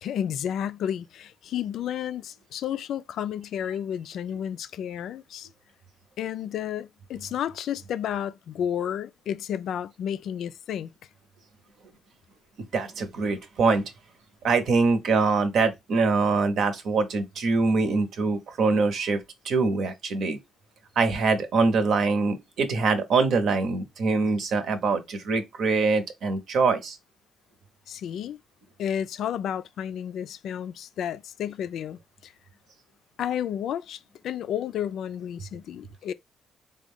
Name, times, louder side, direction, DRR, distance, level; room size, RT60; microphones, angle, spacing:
voice 1, 0.0-5.5 6.2-10.9 27.9-28.4 28.8-32.3 33.2-36.1, left 9 dB, 75° left, 0.3 m, -31 dB
voice 2, 12.7-13.8 14.4-19.2 19.4-20.4 21.0-27.0, right 4 dB, 70° right, 0.8 m, -24 dB
3.5 x 2.3 x 3.5 m
cardioid pair, 90°, 0 cm